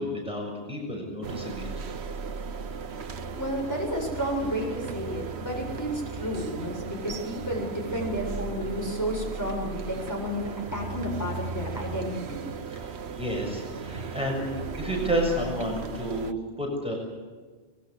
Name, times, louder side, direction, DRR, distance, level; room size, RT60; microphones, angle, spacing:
voice 1, 0.0-1.7 12.7-17.0, equal, 5° right, -1 dB, 6.8 m, -31 dB
sound 1, 1.2-16.3, right 4 dB, 65° right, 1.4 m, -36 dB
voice 2, 3.3-12.4, equal, 15° left, -1 dB, 7.3 m, -31 dB
25.0 x 22.0 x 8.0 m, 1.4 s
omnidirectional pair, 1.2 m